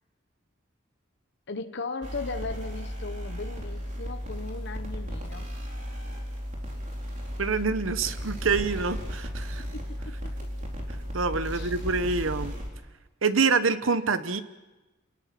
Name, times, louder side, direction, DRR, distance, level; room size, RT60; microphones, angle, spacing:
voice 1, 1.5-5.5 9.6-10.3 11.5-11.7, left 3 dB, 60° left, 8 dB, 1.1 m, -37 dB
sound 1, 2.0-12.7, equal, 40° right, 4.1 m, -35 dB
voice 2, 7.4-9.6 11.1-12.5 13.2-14.4, right 4 dB, 70° right, 12 dB, 1.0 m, -26 dB
28.5 x 19.5 x 6.0 m, 1.1 s
head